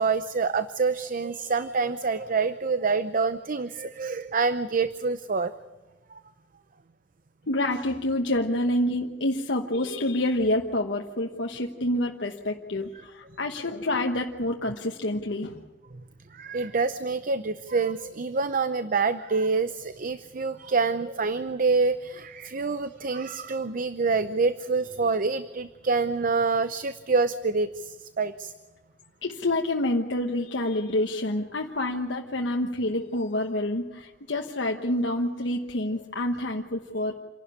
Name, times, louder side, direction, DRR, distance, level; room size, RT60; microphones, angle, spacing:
voice 1, 0.0-5.5 6.1-6.2 16.3-28.5, right 4 dB, 50° right, 12 dB, 0.7 m, -26 dB
voice 2, 7.5-15.6 29.2-37.1, left 1 dB, 80° left, 2 dB, 1.2 m, -27 dB
28.0 x 12.0 x 9.8 m, 1.3 s
head